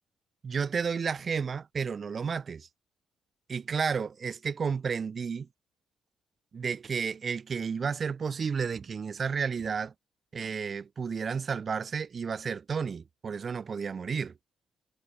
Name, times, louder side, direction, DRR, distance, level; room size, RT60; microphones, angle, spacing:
voice 1, 0.4-2.7 3.5-5.5 6.5-9.9 10.3-14.3, right 6 dB, 45° right, 3.3 m, -32 dB
cardioid pair, 90°, 0 cm